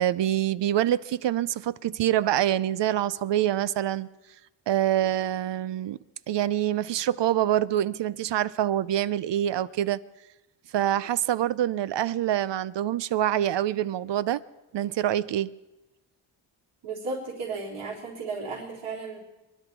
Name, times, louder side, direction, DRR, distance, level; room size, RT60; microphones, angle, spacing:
voice 1, 0.0-4.1 4.7-6.0 6.3-10.0 10.7-14.4 14.7-15.5, right 12 dB, 60° right, 0.6 m, -25 dB
voice 2, 16.8-19.2, right 4 dB, 85° right, 3.9 m, -34 dB
23.5 x 11.0 x 4.7 m
cardioid pair, 70°, 49 cm